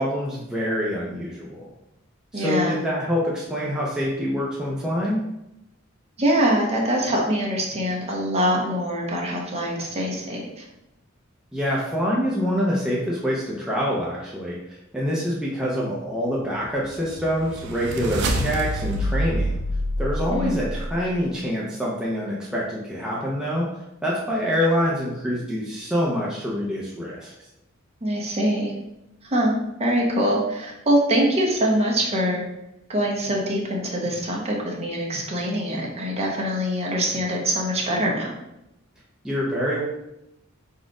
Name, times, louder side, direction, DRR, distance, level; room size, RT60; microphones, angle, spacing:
voice 1, 0.0-1.7 2.3-5.2 11.5-19.6 20.0-27.3 39.2-39.8, equal, 5° right, -6 dB, 0.6 m, -26 dB
voice 2, 2.3-2.8 6.2-10.6 20.3-20.6 28.0-28.7 29.2-29.5 29.8-32.4 32.9-38.3, equal, 30° right, -2 dB, 0.9 m, -23 dB
sound 1, 16.7-21.0, equal, 60° right, 0.6 m, -27 dB
4.2 x 2.4 x 4.7 m, 0.86 s
head